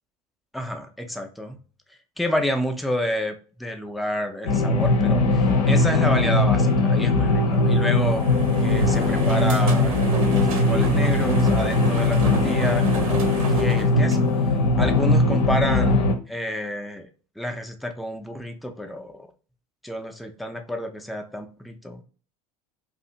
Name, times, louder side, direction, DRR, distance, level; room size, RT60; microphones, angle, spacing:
voice 1, 0.5-1.6 2.2-8.2 8.6-14.3 14.8-17.1 17.4-19.2 19.8-22.0, left 1 dB, ahead, 4 dB, 0.4 m, -29 dB
sound 1, 4.5-16.1, left 2 dB, 65° left, 0.7 m, -20 dB
sound 2, 7.5-14.8, right 5 dB, 70° right, 0.6 m, -32 dB
2.6 x 2.4 x 2.7 m, 0.37 s
figure-of-eight pair, 75°, 19 cm